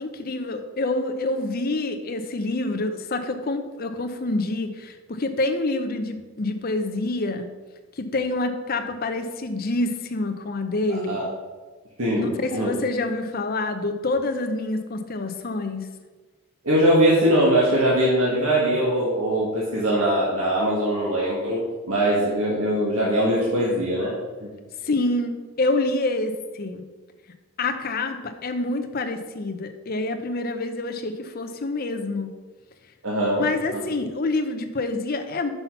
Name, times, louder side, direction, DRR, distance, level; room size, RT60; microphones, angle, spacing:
voice 1, 0.0-7.5 8.0-11.2 12.1-15.9 24.8-26.8 27.6-32.3 33.4-35.5, left 2 dB, 40° left, 6 dB, 0.6 m, -27 dB
voice 2, 10.9-11.2 12.0-12.7 16.6-21.6 21.9-24.1 24.4-24.5 33.0-33.8, right 1 dB, 80° right, -6 dB, 1.5 m, -21 dB
5.8 x 5.6 x 5.6 m, 1.3 s
head